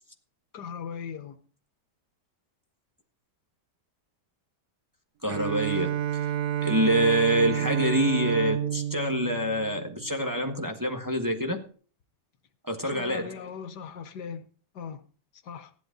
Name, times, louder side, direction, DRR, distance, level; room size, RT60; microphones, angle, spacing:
voice 1, 0.5-1.4 12.8-14.4 14.8-15.0 15.4-15.7, left 6 dB, 75° left, 1.6 m, -39 dB
voice 2, 5.2-6.0 6.6-11.6 12.6-13.4, right 1 dB, 10° right, 1.5 m, -26 dB
Bowed string instrument, 5.3-10.5, right 11 dB, 70° right, 1.2 m, -30 dB
15.0 x 11.0 x 3.9 m
omnidirectional pair, 1.8 m